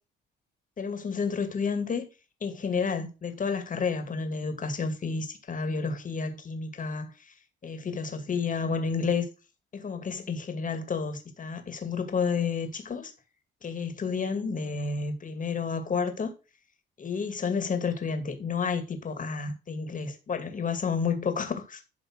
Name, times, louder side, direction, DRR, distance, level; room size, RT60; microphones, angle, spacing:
voice 1, 0.8-2.0 2.4-7.3 7.6-9.3 9.7-13.1 13.6-16.3 17.0-21.8, left 5 dB, 40° left, 2.3 m, -30 dB
11.0 x 3.9 x 6.2 m
cardioid pair, 90°, 20 cm